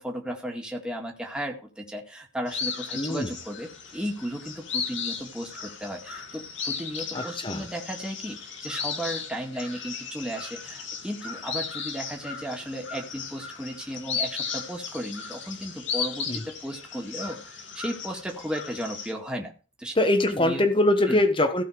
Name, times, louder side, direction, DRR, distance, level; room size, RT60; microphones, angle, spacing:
voice 1, 0.0-19.5 19.8-19.9 20.3-20.7 21.1-21.3, equal, 5° right, 0 dB, 2.0 m, -35 dB
sound 1, 2.5-19.1, left 6 dB, 75° left, 2.4 m, -36 dB
voice 2, 2.9-3.3 7.1-7.6 16.3-16.4 19.9-21.6, left 1 dB, 25° left, 7 dB, 1.3 m, -23 dB
15.5 x 5.8 x 5.0 m, 0.35 s
head